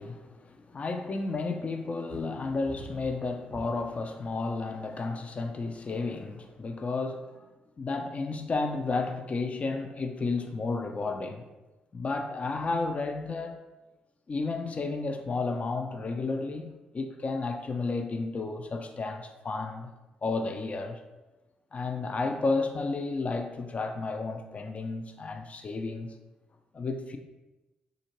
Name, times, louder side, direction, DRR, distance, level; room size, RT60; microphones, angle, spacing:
voice 1, 0.0-7.2 7.8-11.5 11.9-13.6 14.3-16.7 16.9-19.9 20.2-21.0 21.7-26.1 26.7-27.2, left 3 dB, 35° left, 0.4 m, -32 dB
sound 1, 2.1-4.0 4.7-5.1, equal, 60° left, 1.1 m, -45 dB
3.7 x 2.4 x 2.9 m
figure-of-eight pair, 40°, 4 cm